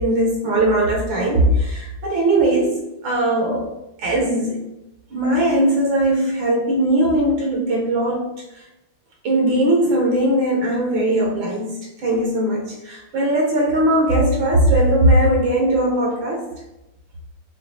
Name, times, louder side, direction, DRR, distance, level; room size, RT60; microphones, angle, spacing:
voice 1, 0.0-3.7 4.0-4.6 5.1-8.2 8.5-8.6 9.2-11.8 12.0-16.5, right 1 dB, 70° right, -3 dB, 1.5 m, -19 dB
6.0 x 2.4 x 2.7 m, 0.93 s
omnidirectional pair, 2.3 m